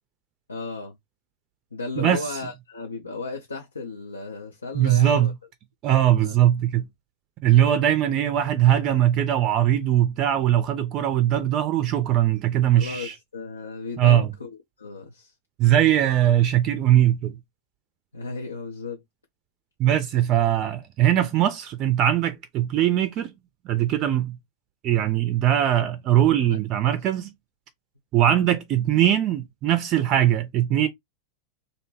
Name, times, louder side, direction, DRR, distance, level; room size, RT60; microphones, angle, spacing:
voice 1, 0.5-0.9 1.7-5.3 6.1-6.4 12.7-14.5 14.8-15.3 18.1-19.0 26.5-26.6 28.2-28.3, left 3 dB, 75° left, 0.4 m, -35 dB
voice 2, 4.7-5.3 5.8-6.8 7.4-13.1 14.0-14.3 15.6-17.3 19.8-23.3 23.7-24.4 24.8-27.3 28.1-30.9, right 11 dB, 35° right, 0.4 m, -20 dB
2.6 x 2.1 x 3.0 m
figure-of-eight pair, 90°, 0 cm